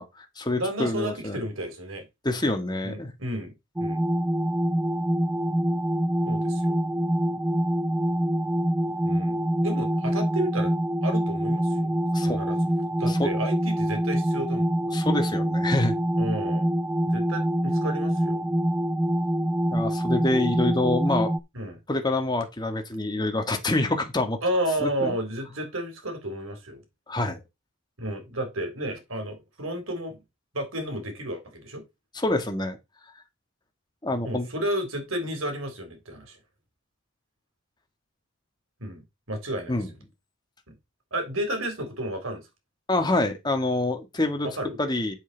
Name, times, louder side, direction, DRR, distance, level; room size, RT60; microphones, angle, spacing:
voice 1, 0.0-1.4 2.2-3.1 12.1-12.4 13.1-13.3 14.9-16.0 19.7-21.3 21.9-24.4 24.8-25.1 27.1-27.4 32.1-32.8 34.0-34.5 39.7-39.9 42.9-44.5 44.8-45.1, left 2 dB, 20° left, 1.7 m, -26 dB
voice 2, 0.6-2.1 2.8-3.5 3.8-4.1 6.3-6.7 9.1-10.8 11.0-12.0 12.2-12.6 13.0-14.7 16.2-16.7 17.1-18.4 21.5-21.8 24.4-26.8 28.0-30.2 30.5-31.8 34.2-36.4 38.8-39.8 40.7-40.8 41.1-42.4 44.4-44.8, right 1 dB, 85° right, 3.7 m, -32 dB
sound 1, 3.8-21.4, equal, 10° right, 0.4 m, -25 dB
8.2 x 7.1 x 4.0 m
head